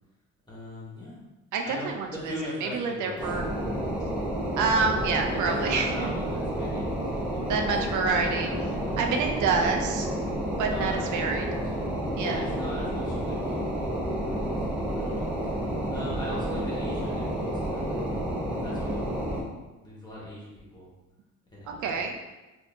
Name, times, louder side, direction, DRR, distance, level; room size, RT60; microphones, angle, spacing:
voice 1, 0.5-1.2 1.6-3.4 5.3-7.9 8.2-9.1 10.6-11.7 12.1-15.6 15.9-18.1 18.6-20.9 21.5-22.0, left 1 dB, 15° left, -6 dB, 1.5 m, -41 dB
voice 2, 1.5-3.5 4.6-6.1 7.5-8.5 9.0-10.1 10.6-11.5 12.2-12.4 21.8-22.1, right 5 dB, 75° right, 3 dB, 0.5 m, -27 dB
sound 1, 3.2-19.4, right 1 dB, 5° right, 0.8 m, -30 dB
4.1 x 2.8 x 2.6 m, 1.1 s
cardioid pair, 90°, 30 cm